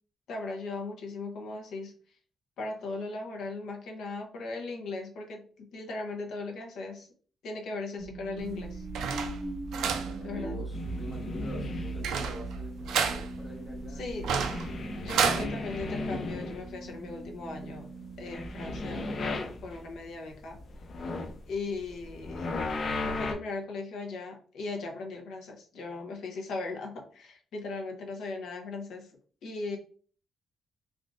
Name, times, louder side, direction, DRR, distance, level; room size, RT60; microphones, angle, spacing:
voice 1, 0.3-1.9 2.6-7.1 7.4-8.8 10.2-10.6 13.9-14.3 15.0-17.9 18.2-19.0 19.6-20.6 21.5-22.6 23.0-29.1 29.4-29.8, left 3 dB, 70° left, 2 dB, 0.8 m, -38 dB
sound 1, 8.0-20.1, right 2 dB, 10° right, 0.6 m, -43 dB
sound 2, 8.4-15.5, right 6 dB, 80° right, 0.4 m, -32 dB
voice 2, 9.8-14.3, equal, 5° left, -4 dB, 1.1 m, -45 dB
sound 3, 10.7-12.2 12.8-13.8 14.1-17.0 17.2-20.0 20.4-23.3, left 3 dB, 40° left, 0.4 m, -36 dB
3.5 x 2.4 x 2.5 m, 0.43 s
cardioid pair, 165°, 0 cm